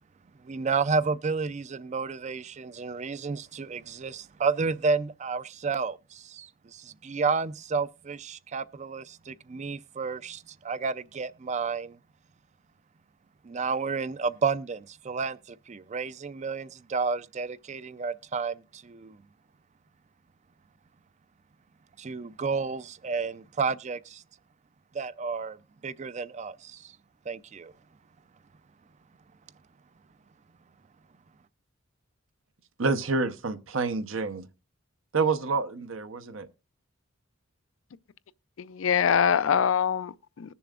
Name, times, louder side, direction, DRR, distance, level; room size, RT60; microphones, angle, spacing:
voice 1, 0.4-12.0 13.4-19.2 22.0-24.2 24.9-25.6 25.8-26.9 27.3-27.7, right 4 dB, 35° right, 0.4 m, -31 dB
voice 2, 32.8-34.5 35.1-36.5, right 4 dB, 75° right, 0.8 m, -28 dB
voice 3, 38.6-40.5, left 7 dB, 70° left, 0.4 m, -24 dB
20.5 x 6.9 x 2.4 m
head